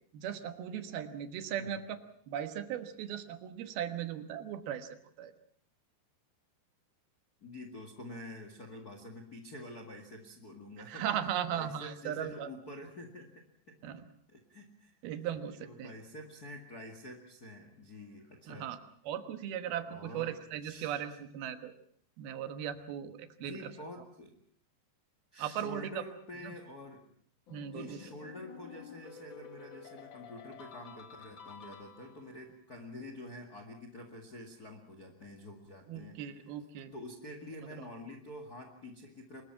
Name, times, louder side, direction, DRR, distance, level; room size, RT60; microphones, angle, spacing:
voice 1, 0.1-2.0 2.3-4.9 5.2-5.3 10.8-12.5 13.8-14.1 15.0-15.9 18.5-18.8 19.0-21.7 22.2-23.7 25.4-26.0 26.4-26.5 27.5-28.0 35.9-36.9 37.8-37.9, right 10 dB, 70° right, 9 dB, 3.2 m, -38 dB
voice 2, 7.4-11.1 11.5-13.3 13.7-13.8 14.3-15.0 15.6-18.7 19.9-20.3 20.6-21.2 23.4-24.4 25.3-27.0 27.7-36.5 36.9-39.4, left 1 dB, 35° left, 5 dB, 1.7 m, -47 dB
sound 1, 27.5-32.4, left 7 dB, 65° left, 1.2 m, -51 dB
24.5 x 21.0 x 5.8 m, 0.63 s
omnidirectional pair, 4.8 m